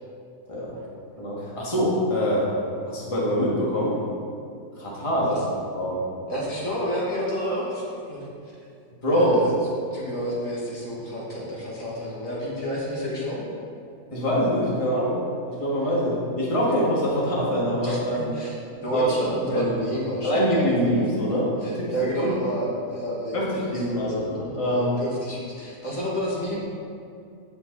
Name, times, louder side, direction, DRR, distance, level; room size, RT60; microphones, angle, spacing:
voice 1, 0.5-0.8 1.2-2.5 2.9-4.0 4.8-5.4 5.7-6.0 9.0-9.4 14.1-15.2 15.5-18.4 18.9-19.1 19.5-21.9 22.2-22.3 23.3-24.9, equal, 20° left, -6 dB, 2.0 m, -24 dB
voice 2, 6.3-8.3 9.1-9.5 9.9-13.5 17.8-24.2 24.5-26.6, equal, 60° left, -6 dB, 2.5 m, -31 dB
16.0 x 6.1 x 4.0 m, 2.5 s
omnidirectional pair, 1.6 m